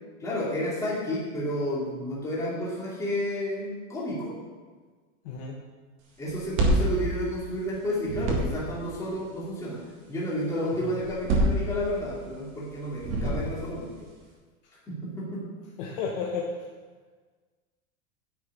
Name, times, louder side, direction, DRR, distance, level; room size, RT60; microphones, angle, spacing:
voice 1, 0.2-4.3 6.2-9.8 10.1-13.9 14.9-15.4, equal, 5° left, -7 dB, 2.6 m, -31 dB
sound 1, 6.3-7.8 8.0-8.8 11.0-12.2 13.0-13.8, right 1 dB, 25° right, 1.8 m, -26 dB
voice 2, 15.8-16.5, left 6 dB, 40° left, -1 dB, 1.2 m, -32 dB
10.0 x 6.5 x 8.2 m, 1.4 s
supercardioid pair, 180°, 43 cm